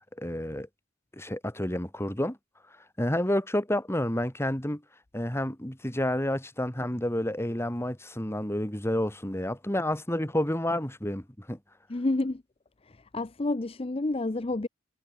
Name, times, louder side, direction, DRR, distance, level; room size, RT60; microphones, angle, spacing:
voice 1, 0.2-0.7 1.1-2.4 3.0-4.8 5.1-11.6, left 1 dB, 15° left, 2.7 m, -29 dB
voice 2, 11.9-12.4 12.8-14.7, left 2 dB, 30° left, 0.6 m, -29 dB
head